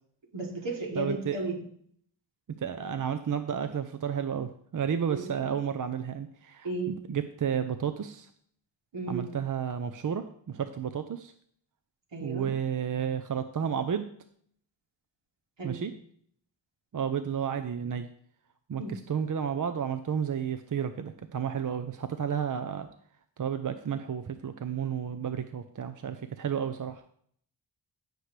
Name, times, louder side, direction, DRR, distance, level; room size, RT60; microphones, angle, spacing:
voice 1, 0.3-1.6 5.1-5.2 6.6-6.9 8.9-9.3 12.1-12.5 15.6-15.9 18.8-18.9, right 2 dB, 75° right, -1 dB, 3.1 m, -34 dB
voice 2, 1.0-1.4 2.6-8.3 9.1-11.3 12.2-14.1 15.6-15.9 16.9-18.1 18.7-22.9 23.4-27.0, right 8 dB, 45° right, 9 dB, 0.7 m, -32 dB
15.5 x 6.7 x 3.3 m, 0.62 s
wide cardioid pair, 95°, 44 cm